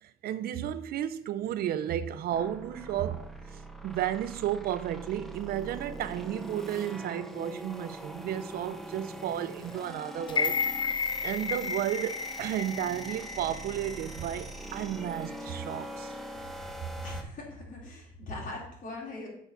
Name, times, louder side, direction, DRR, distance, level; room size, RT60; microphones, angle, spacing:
voice 1, 0.0-10.6 11.2-16.1 16.8-16.9, right 11 dB, 65° right, 0.6 m, -33 dB
sound 1, 2.3-17.2, right 1 dB, ahead, 1.1 m, -43 dB
sound 2, 9.3-16.8, right 1 dB, 25° right, 2.3 m, -57 dB
sound 3, 10.3-14.4 14.8-14.9, left 5 dB, 30° left, 0.5 m, -33 dB
voice 2, 17.0-19.3, left 2 dB, 50° left, 3.4 m, -40 dB
8.0 x 4.8 x 5.6 m
cardioid pair, 110°, 17 cm